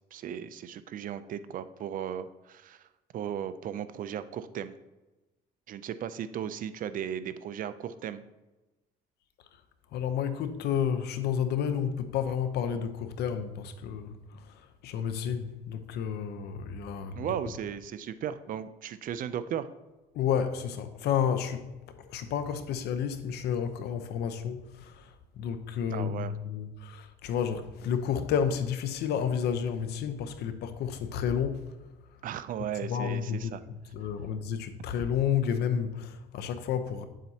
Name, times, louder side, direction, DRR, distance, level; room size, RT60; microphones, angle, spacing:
voice 1, 0.1-4.7 5.7-8.2 17.2-19.7 25.9-26.3 32.2-33.6, right 9 dB, 55° right, 0.5 m, -36 dB
voice 2, 9.9-17.3 20.1-21.7 22.1-31.8 32.8-33.5 33.9-37.0, left 8 dB, 75° left, 0.8 m, -31 dB
9.1 x 7.4 x 2.8 m
cardioid pair, 110°, 17 cm